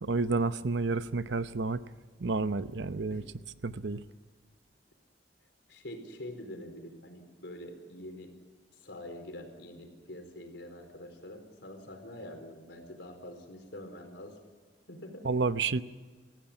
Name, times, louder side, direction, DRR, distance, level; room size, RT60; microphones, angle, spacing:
voice 1, 0.0-1.8 2.2-3.2 3.6-4.0 15.2-15.8, right 3 dB, 75° right, 13 dB, 0.8 m, -30 dB
voice 2, 2.8-3.2 5.7-8.3 8.7-14.4 14.9-15.3, left 1 dB, 80° left, 4 dB, 4.5 m, -45 dB
27.0 x 15.5 x 8.9 m, 1.4 s
head